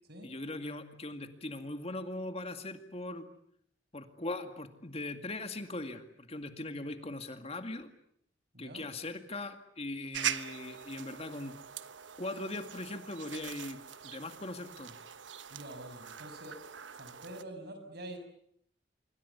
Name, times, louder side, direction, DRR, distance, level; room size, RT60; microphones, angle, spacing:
voice 1, 0.2-3.3 3.9-7.9 8.6-11.5 12.2-15.0, left 2 dB, 35° left, 7 dB, 2.2 m, -40 dB
voice 2, 8.5-8.9 15.5-16.6 16.9-18.2, right 1 dB, 60° right, 8 dB, 6.1 m, -46 dB
sound 1, 10.1-17.4, right 9 dB, 85° right, 1.1 m, -42 dB
26.0 x 24.5 x 8.2 m, 0.69 s
head